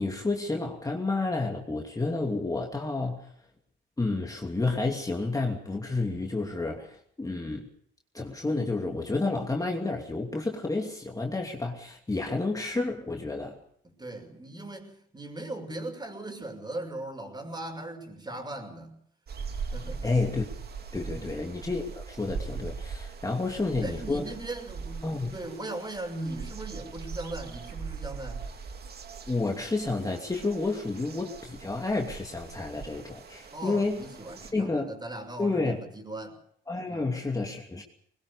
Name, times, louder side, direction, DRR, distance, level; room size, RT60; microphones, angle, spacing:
voice 1, 0.0-3.3 4.0-7.7 8.1-13.6 20.0-20.4 20.9-24.3 25.0-25.4 29.3-34.0 34.5-34.9 35.4-35.8 36.7-37.8, left 3 dB, 20° left, 1 dB, 2.8 m, -30 dB
voice 2, 13.8-19.0 19.7-20.1 21.1-21.5 23.3-23.4 23.8-28.4 33.5-36.4 36.9-37.1, right 2 dB, 20° right, 6 dB, 6.0 m, -39 dB
sound 1, 19.3-34.5, right 5 dB, 55° right, 2.5 m, -41 dB
21.5 x 20.0 x 6.9 m, 0.65 s
cardioid pair, 90°, 20 cm